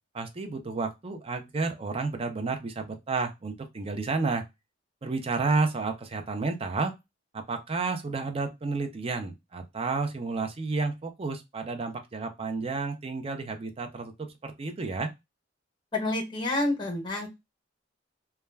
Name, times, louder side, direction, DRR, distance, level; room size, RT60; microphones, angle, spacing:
voice 1, 0.1-4.4 5.0-6.9 7.3-15.1, right 3 dB, 30° right, 0.5 m, -31 dB
voice 2, 15.9-17.3, left 2 dB, 25° left, 0.9 m, -28 dB
2.2 x 2.1 x 3.2 m
head